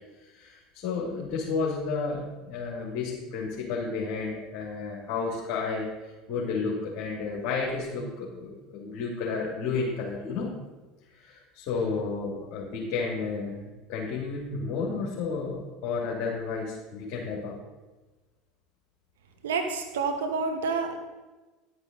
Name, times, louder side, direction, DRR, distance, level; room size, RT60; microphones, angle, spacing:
voice 1, 0.4-5.9 6.3-10.5 11.1-17.6, left 4 dB, 55° left, -4 dB, 2.6 m, -32 dB
voice 2, 19.4-21.0, right 4 dB, 80° right, 5 dB, 1.0 m, -28 dB
11.0 x 9.6 x 3.9 m, 1.2 s
hypercardioid pair, 80°, 0 cm